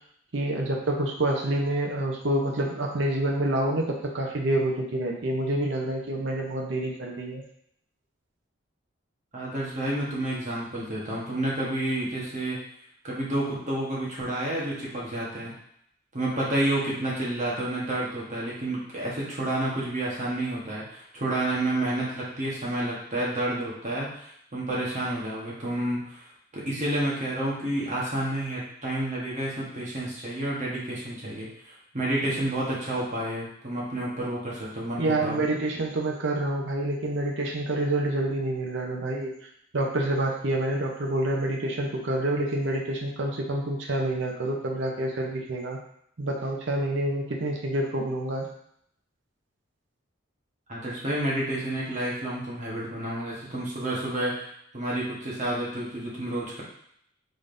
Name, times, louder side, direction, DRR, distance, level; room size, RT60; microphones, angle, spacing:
voice 1, 0.3-7.4 35.0-39.3 39.7-45.8 46.2-48.5, right 1 dB, 60° right, 0 dB, 0.7 m, -27 dB
voice 2, 9.3-12.6 13.0-15.5 16.1-26.3 26.5-35.5 50.7-54.5 54.7-56.6, right 1 dB, 35° right, -5 dB, 1.1 m, -30 dB
3.9 x 3.4 x 2.5 m, 0.70 s
head